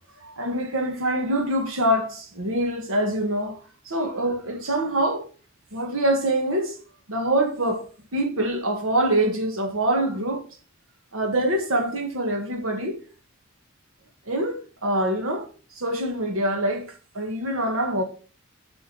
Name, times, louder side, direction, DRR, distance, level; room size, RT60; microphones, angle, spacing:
voice 1, 0.2-3.6 3.8-5.3 5.7-6.8 7.1-7.8 8.1-10.4 11.1-13.0 14.3-16.9 17.1-18.0, right 1 dB, 85° right, 1.7 m, -25 dB
7.8 x 6.2 x 4.5 m
head